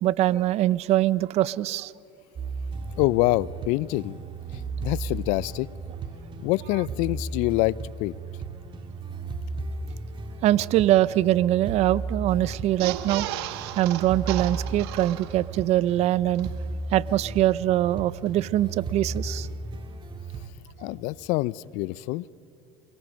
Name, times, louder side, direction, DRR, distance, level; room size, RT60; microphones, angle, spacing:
voice 1, 0.0-1.9 10.4-13.3 13.8-16.5 16.9-19.5 20.8-20.9, right 14 dB, 55° right, 19 dB, 0.6 m, -23 dB
sound 1, 2.4-20.5, right 3 dB, 35° right, 2.3 m, -35 dB
voice 2, 3.0-4.2 4.8-5.7 6.4-8.1 20.8-22.2, left 19 dB, 70° left, 22 dB, 0.5 m, -25 dB
sound 2, 12.7-15.7 16.0-16.1 16.3-16.5, right 14 dB, 85° right, 1.2 m, -34 dB
28.5 x 22.0 x 6.3 m, 2.4 s
supercardioid pair, 95°, 13 cm